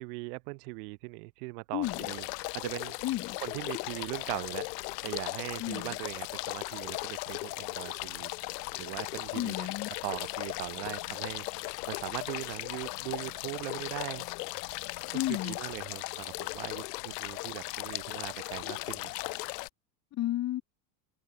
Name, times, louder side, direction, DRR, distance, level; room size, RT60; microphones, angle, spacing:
voice 1, 0.0-3.0 3.4-4.7 5.0-9.7 10.0-14.3 15.1-19.1, right 30 dB, 70° right, 0.8 m, -40 dB
voice 2, 1.7-2.1 3.0-3.4 5.6-6.0 9.3-9.9 15.1-15.6 20.1-20.6, left 14 dB, 35° left, 1.1 m, -32 dB
sound 1, 1.8-19.7, left 24 dB, 75° left, 1.3 m, -37 dB
supercardioid pair, 135°, 48 cm